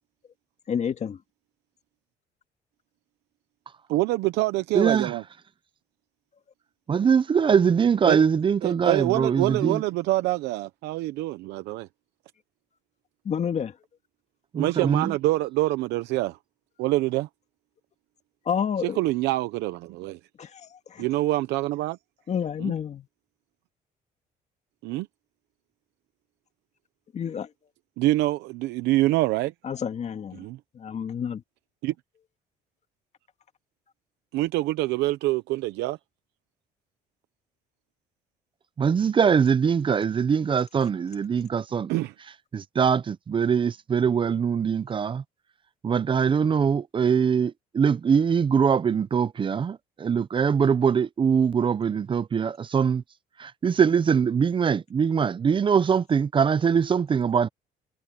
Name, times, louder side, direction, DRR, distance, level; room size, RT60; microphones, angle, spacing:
voice 1, 0.7-1.2 13.3-13.8 18.5-19.0 20.4-21.0 22.3-23.1 27.1-27.5 29.6-30.4 30.7-31.4, left 7 dB, 40° left, 2.0 m, -29 dB
voice 2, 3.9-5.2 8.1-8.2 8.6-11.9 14.5-16.4 16.8-17.3 18.8-20.2 21.0-22.0 22.6-22.7 24.8-25.1 28.0-29.5 30.3-30.6 31.8-31.9 34.3-36.0 41.9-42.1, right 18 dB, 90° right, 0.8 m, -25 dB
voice 3, 4.7-5.1 6.9-9.8 14.5-15.1 38.8-41.9 42.5-45.2 45.8-53.0 53.4-57.5, right 6 dB, 30° right, 0.6 m, -22 dB
cardioid pair, 110°, 17 cm